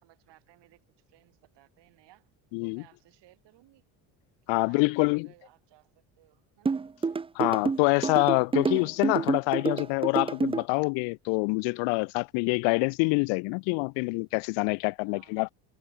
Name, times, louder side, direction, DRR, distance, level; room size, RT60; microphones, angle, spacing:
voice 1, 0.0-2.3 2.6-3.9 4.4-6.8 15.0-15.4, right 16 dB, 65° right, 5.3 m, -60 dB
voice 2, 2.5-2.8 4.5-5.3 7.3-15.5, left 34 dB, 80° left, 0.7 m, -26 dB
sound 1, 6.7-10.6, right 4 dB, 15° right, 0.5 m, -28 dB
supercardioid pair, 95°, 44 cm